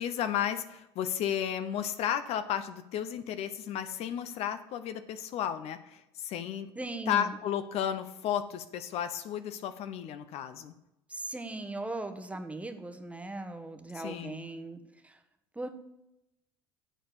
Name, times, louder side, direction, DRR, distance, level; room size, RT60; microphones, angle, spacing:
voice 1, 0.0-6.7 7.1-10.7 13.9-14.4, left 9 dB, 55° left, 11 dB, 0.7 m, -33 dB
voice 2, 6.7-7.4 11.1-15.2 15.5-15.7, right 2 dB, 10° right, 7 dB, 1.1 m, -39 dB
9.1 x 4.3 x 7.0 m, 0.89 s
hypercardioid pair, 70°, 13 cm